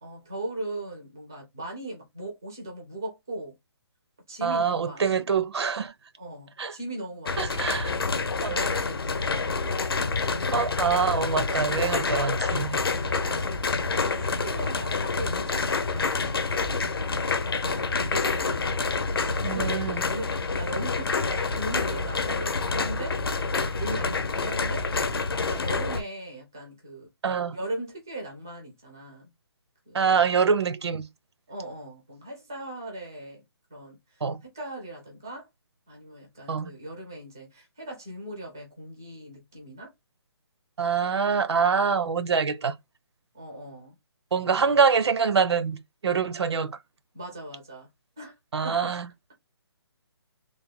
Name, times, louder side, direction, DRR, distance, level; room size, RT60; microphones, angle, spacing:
voice 1, 0.0-3.5 4.3-5.2 6.2-8.0 8.4-10.2 13.0-16.8 17.4-18.5 19.0-23.2 23.6-24.9 25.3-27.1 27.5-29.3 29.9-30.2 31.5-33.4 33.7-35.5 35.9-39.9 43.3-44.0 44.4-44.8 47.1-47.9 48.2-48.3 48.6-48.9, right 1 dB, 10° right, 0.4 m, -39 dB
voice 2, 4.4-5.9 6.6-6.7 7.4-7.9 10.5-12.8 19.4-20.0 27.2-27.6 29.9-31.0 34.2-34.4 36.5-36.7 40.8-42.7 44.3-45.8 46.0-46.7 48.5-49.1, right 6 dB, 85° right, 0.6 m, -25 dB
sound 1, 7.3-26.0, left 4 dB, 60° left, 0.7 m, -27 dB
3.3 x 2.1 x 3.6 m
hypercardioid pair, 180°, 14 cm